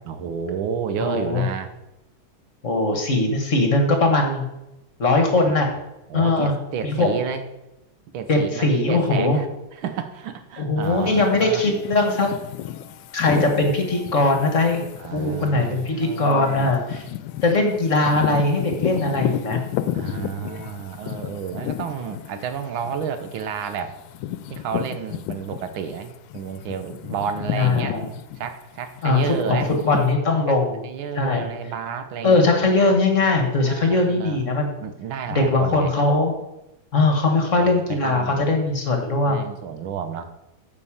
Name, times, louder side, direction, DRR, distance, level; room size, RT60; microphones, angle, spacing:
voice 1, 0.0-1.7 5.6-5.7 6.1-7.4 8.1-9.5 9.7-11.6 15.0-16.8 19.9-24.0 24.5-28.0 28.4-29.7 30.5-30.6 30.8-32.5 33.6-34.4 34.8-35.9 37.2-38.5 39.2-40.3, right 7 dB, 85° right, 9 dB, 1.7 m, -31 dB
voice 2, 1.0-1.4 2.6-4.4 5.0-5.7 6.1-6.5 6.8-7.2 8.3-9.4 10.6-12.3 13.1-14.8 15.1-17.0 17.4-19.6 20.0-20.3 27.5-28.0 29.0-30.8 31.1-31.5 32.2-34.7 35.3-36.3 36.9-39.4, left 2 dB, 45° left, 3 dB, 1.5 m, -20 dB
sound 1, 10.8-25.9 26.3-30.1, left 12 dB, 80° left, 1.3 m, -32 dB
9.5 x 5.2 x 7.1 m, 0.93 s
omnidirectional pair, 2.1 m